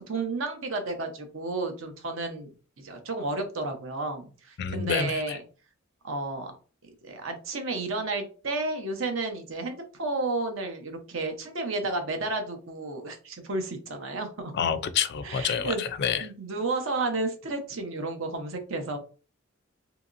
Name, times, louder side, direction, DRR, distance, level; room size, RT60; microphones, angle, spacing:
voice 1, 0.0-5.4 6.0-6.5 7.0-14.5 15.2-15.9 16.2-19.0, right 3 dB, 65° right, 5 dB, 0.7 m, -32 dB
voice 2, 4.6-5.4 14.5-16.3, left 7 dB, 55° left, 12 dB, 0.3 m, -28 dB
2.8 x 2.8 x 2.5 m, 0.36 s
head